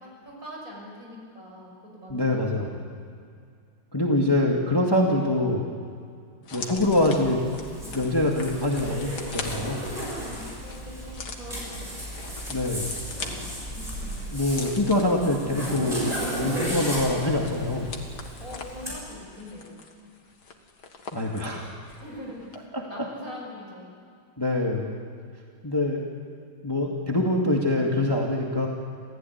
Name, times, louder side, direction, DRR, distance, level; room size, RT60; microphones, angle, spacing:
voice 1, 0.0-2.8 7.8-8.2 10.2-11.9 13.7-14.2 18.4-19.8 21.8-23.9, left 1 dB, 40° right, -1 dB, 6.8 m, -43 dB
voice 2, 2.1-2.7 3.9-5.7 6.5-7.4 7.9-9.9 12.5-12.9 14.3-17.9 21.1-21.7 22.7-22.8 24.4-24.9 25.6-26.0 26.6-28.7, left 1 dB, 10° left, -1 dB, 2.1 m, -24 dB
sound 1, 6.4-22.1 22.4-22.6, left 4 dB, 55° left, 2.4 m, -42 dB
Zipper (clothing), 6.7-18.9, equal, 20° right, 7.1 m, -35 dB
27.0 x 16.0 x 9.6 m, 2.2 s
omnidirectional pair, 2.3 m